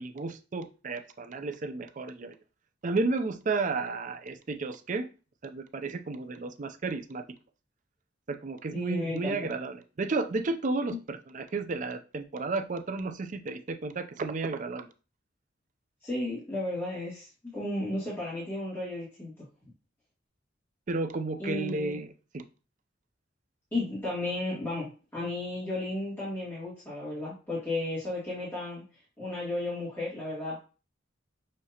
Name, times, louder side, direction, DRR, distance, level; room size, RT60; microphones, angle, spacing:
voice 1, 0.0-2.4 2.8-5.1 5.4-7.2 8.3-14.9 20.9-22.4, right 3 dB, 40° right, 7 dB, 0.4 m, -32 dB
voice 2, 8.7-9.4 10.9-11.0 16.0-19.3 21.4-22.0 23.7-28.8 29.2-30.6, left 2 dB, 10° left, -9 dB, 1.9 m, -34 dB
6.3 x 2.8 x 2.8 m, 0.33 s
head